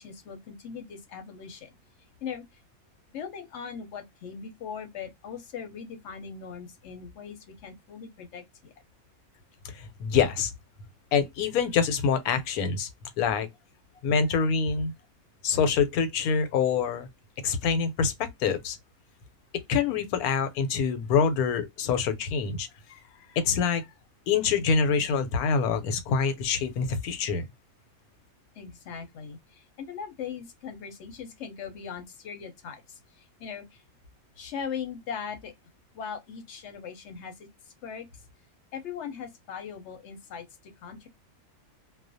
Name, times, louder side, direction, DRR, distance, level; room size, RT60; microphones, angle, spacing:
voice 1, 0.0-1.7 2.2-2.4 3.1-8.7 28.6-33.8 34.4-35.5 35.9-37.5 37.8-38.1 38.7-40.5 40.8-41.1, left 7 dB, 65° left, 0.8 m, -39 dB
voice 2, 9.7-10.5 11.1-12.9 13.2-13.5 14.0-14.9 15.4-17.1 17.4-18.8 19.7-22.7 23.3-23.8 24.3-27.4, left 6 dB, 90° left, 1.1 m, -25 dB
2.4 x 2.1 x 2.5 m
omnidirectional pair, 1.5 m